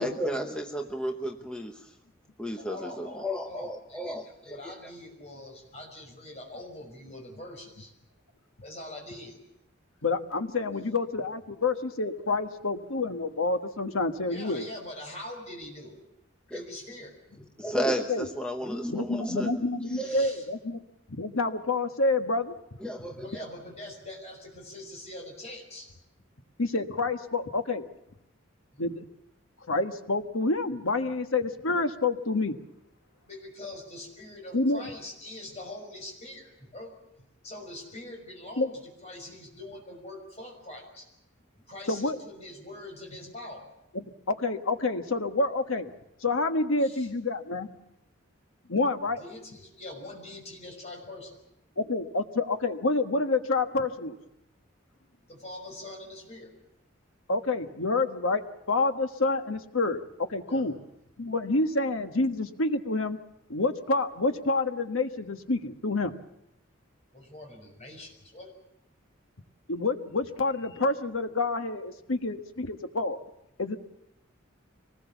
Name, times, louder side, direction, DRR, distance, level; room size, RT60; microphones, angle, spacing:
voice 1, 0.0-1.8 2.4-4.7 16.5-16.6 17.6-19.6 19.9-20.2 22.8-23.4, equal, 5° left, 3 dB, 1.0 m, -33 dB
voice 2, 2.6-7.9 8.6-9.4 14.3-16.0 16.5-17.1 20.0-20.5 23.2-25.9 28.7-28.8 33.3-36.9 37.4-41.1 41.7-43.6 46.8-47.1 49.2-51.4 55.2-56.5 60.5-60.7 67.1-68.5, left 1 dB, 35° left, 2 dB, 5.7 m, -43 dB
voice 3, 10.0-14.7 18.1-18.3 18.9-20.8 21.1-22.5 26.6-27.8 28.8-29.0 29.7-32.6 34.5-34.8 38.6-38.7 41.9-42.2 43.9-45.9 46.2-47.7 48.7-49.2 51.8-54.2 57.3-60.7 61.2-63.2 63.5-66.1 69.7-73.2 73.6-73.8, left 3 dB, 85° left, 7 dB, 1.4 m, -28 dB
24.5 x 19.5 x 7.1 m, 0.84 s
head